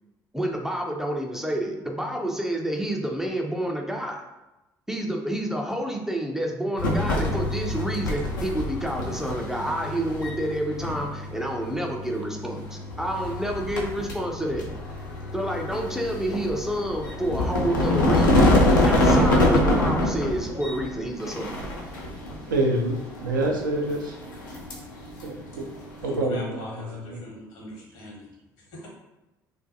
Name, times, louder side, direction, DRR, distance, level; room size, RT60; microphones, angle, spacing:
voice 1, 0.3-4.3 4.9-14.7 15.3-18.6 18.8-21.5, right 1 dB, 5° right, 1 dB, 0.4 m, -29 dB
sound 1, 6.8-26.2, left 1 dB, 75° left, 0.5 m, -26 dB
voice 2, 22.5-24.0 25.2-25.6 26.0-27.2, right 1 dB, 80° right, 0 dB, 0.4 m, -27 dB
voice 3, 26.0-28.2 28.7-28.9, equal, 60° left, -3 dB, 1.0 m, -40 dB
2.5 x 2.2 x 2.6 m, 0.98 s
figure-of-eight pair, 55°, 11 cm